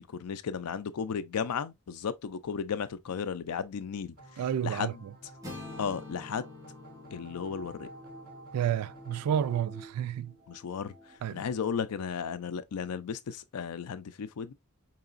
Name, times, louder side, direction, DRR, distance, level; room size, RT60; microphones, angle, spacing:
voice 1, 0.0-4.1 4.6-5.0 5.8-6.5 7.1-7.9 10.5-10.9 11.3-14.5, left 6 dB, 85° left, 0.4 m, -34 dB
sound 1, 4.2-9.6, right 1 dB, 40° right, 1.7 m, -52 dB
sound 2, 4.4-11.2, right 1 dB, 5° left, 0.8 m, -52 dB
voice 2, 4.4-5.1 8.5-10.3 11.2-11.4, right 9 dB, 85° right, 0.3 m, -30 dB
sound 3, 5.4-9.4, left 2 dB, 15° right, 1.7 m, -48 dB
4.7 x 2.9 x 2.4 m
head